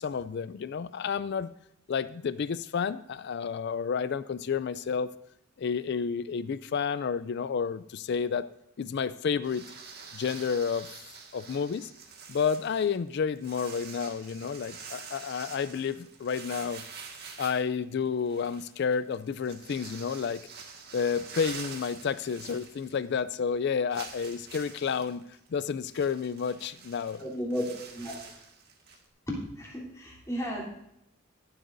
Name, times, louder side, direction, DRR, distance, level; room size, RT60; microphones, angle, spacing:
voice 1, 0.0-1.5 1.9-5.1 5.6-8.5 8.8-9.6 10.1-10.9 11.3-11.9 12.3-16.8 17.4-20.4 20.9-25.2 25.5-27.2, left 6 dB, 50° left, 15 dB, 0.3 m, -30 dB
sound 1, 9.4-23.2 23.5-23.6 23.9-29.1, right 5 dB, 50° right, 1.7 m, -46 dB
voice 2, 27.2-27.6 27.9-28.2 29.3-30.7, equal, 15° left, -4 dB, 3.3 m, -34 dB
22.5 x 8.0 x 2.6 m, 0.79 s
head